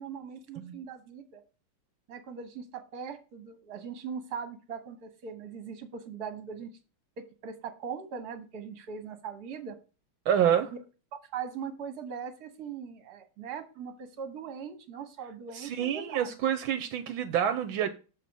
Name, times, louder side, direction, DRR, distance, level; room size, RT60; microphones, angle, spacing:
voice 1, 0.0-1.4 2.1-6.7 7.2-9.8 10.7-10.8 11.3-16.3, right 6 dB, 55° right, 1.6 m, -40 dB
voice 2, 10.3-10.7 15.5-17.9, right 9 dB, 80° right, 1.4 m, -27 dB
6.9 x 4.1 x 6.0 m
omnidirectional pair, 2.3 m